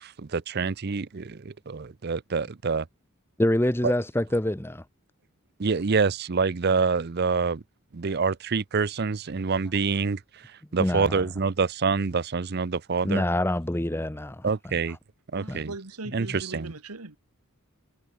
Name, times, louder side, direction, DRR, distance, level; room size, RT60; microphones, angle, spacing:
voice 1, 0.0-2.9 3.8-3.9 5.6-7.6 7.9-10.2 10.7-13.2 14.4-15.0 15.3-15.7 16.1-16.7, right 5 dB, 45° right, 0.6 m, -26 dB
voice 2, 3.4-4.8 10.8-11.2 13.0-15.0 15.5-15.6, left 1 dB, 10° left, 0.8 m, -26 dB
voice 3, 15.3-17.2, right 2 dB, 90° right, 1.8 m, -39 dB
head